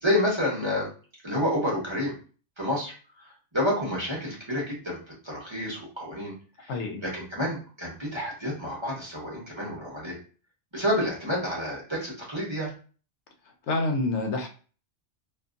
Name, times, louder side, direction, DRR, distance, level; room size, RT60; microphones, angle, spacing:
voice 1, 0.0-0.9 1.2-2.1 2.6-5.0 5.2-6.3 7.0-10.2 10.7-12.7, left 1 dB, 25° right, -5 dB, 0.9 m, -29 dB
voice 2, 6.7-7.0 13.7-14.5, left 2 dB, 75° left, 3 dB, 0.9 m, -27 dB
2.6 x 2.5 x 2.4 m, 0.38 s
omnidirectional pair, 1.2 m